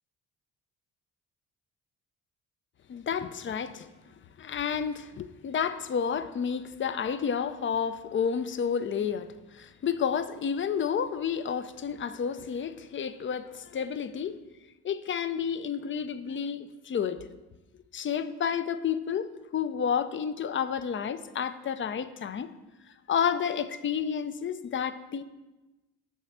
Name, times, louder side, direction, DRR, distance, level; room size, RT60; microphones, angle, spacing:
voice 1, 2.9-3.9 4.4-14.4 14.8-17.2 17.9-22.5 23.1-25.2, left 7 dB, 35° left, 0.4 m, -30 dB
7.3 x 3.2 x 5.7 m
supercardioid pair, 55°, 38 cm